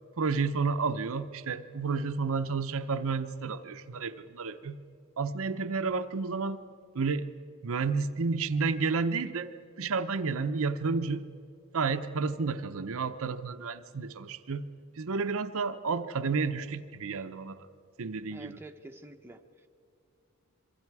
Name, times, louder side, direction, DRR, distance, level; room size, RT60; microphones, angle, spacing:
voice 1, 0.2-4.8 5.2-6.6 6.9-7.3 7.6-9.5 9.8-11.2 11.7-14.7 15.0-17.6 18.0-18.6, right 4 dB, 65° right, 8 dB, 0.7 m, -31 dB
voice 2, 18.3-19.7, right 1 dB, 10° right, 4 dB, 0.9 m, -48 dB
26.0 x 23.5 x 4.8 m, 2.4 s
head